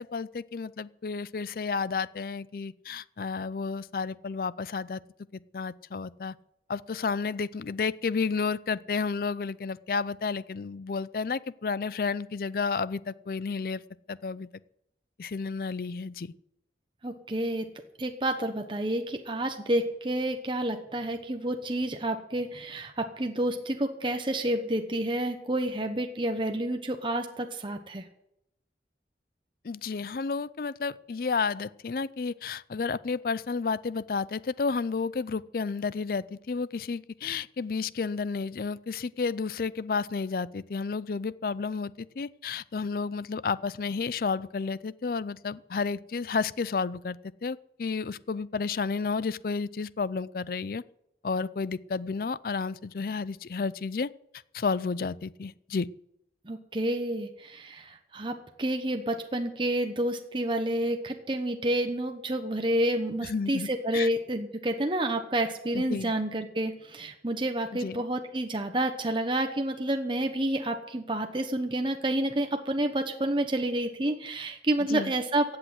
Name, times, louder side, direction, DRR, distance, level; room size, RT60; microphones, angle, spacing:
voice 1, 0.0-5.0 5.3-6.3 6.7-13.8 14.1-14.5 15.2-16.3 29.6-50.8 51.2-54.1 54.5-55.9 63.2-64.1 65.7-66.1 67.8-68.0 74.9-75.1, left 4 dB, 55° left, 19 dB, 0.4 m, -31 dB
voice 2, 17.0-17.7 18.0-28.0 56.5-75.6, right 1 dB, 30° right, 5 dB, 1.0 m, -29 dB
15.5 x 8.7 x 7.8 m, 0.80 s
head